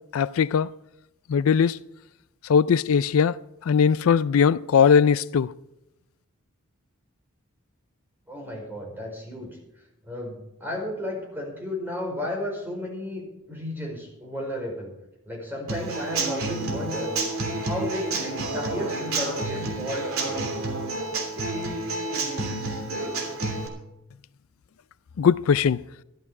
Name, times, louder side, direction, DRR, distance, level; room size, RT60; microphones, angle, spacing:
voice 1, 0.1-0.7 1.3-1.8 2.4-3.4 3.7-5.5 25.2-25.8, left 7 dB, 70° left, 0.4 m, -20 dB
voice 2, 8.3-9.6 10.0-14.9 15.3-17.1 17.5-20.5, left 1 dB, 10° right, 4.9 m, -33 dB
Human voice / Acoustic guitar / Drum, 15.7-23.7, right 2 dB, 80° right, 3.1 m, -29 dB
13.5 x 12.0 x 4.9 m
head